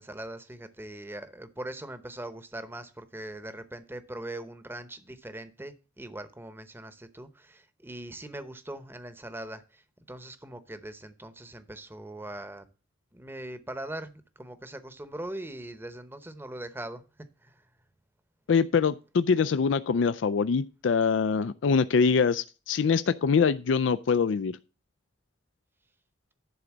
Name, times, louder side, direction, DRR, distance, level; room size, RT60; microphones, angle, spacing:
voice 1, 0.0-12.7 13.1-17.0 17.4-17.6, right 1 dB, 10° right, 0.8 m, -41 dB
voice 2, 18.5-24.6, left 5 dB, 75° left, 0.4 m, -24 dB
11.0 x 4.0 x 7.2 m
head